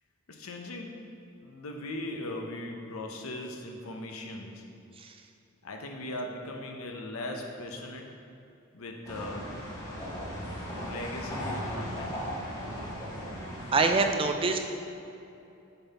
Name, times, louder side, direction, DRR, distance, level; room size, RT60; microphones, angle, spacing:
voice 1, 0.3-0.9 1.4-4.6 5.6-8.1 8.7-9.6 10.8-12.2, left 1 dB, 80° left, 2 dB, 0.7 m, -39 dB
sound 1, 9.0-14.0, equal, 15° left, 1.4 m, -37 dB
voice 2, 13.7-14.7, right 3 dB, 25° right, 5 dB, 0.4 m, -24 dB
6.9 x 4.0 x 4.1 m, 2.7 s
head